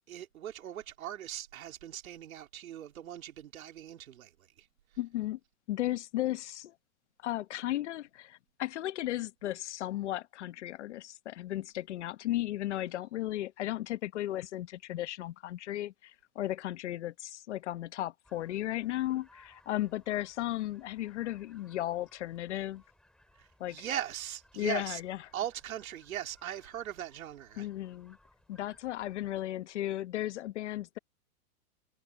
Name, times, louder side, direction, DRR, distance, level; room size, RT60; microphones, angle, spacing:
voice 1, 0.1-4.7 23.4-25.0 25.3-27.7, right 11 dB, 70° right, 3.6 m, -40 dB
voice 2, 5.0-5.4 5.7-6.7 7.2-22.8 23.6-23.8 24.6-25.2 27.6-28.2 28.5-31.0, left 14 dB, 50° left, 1.1 m, -35 dB
sound 1, 18.2-29.5, left 1 dB, ahead, 5.1 m, -64 dB
hypercardioid pair, 160°, 43 cm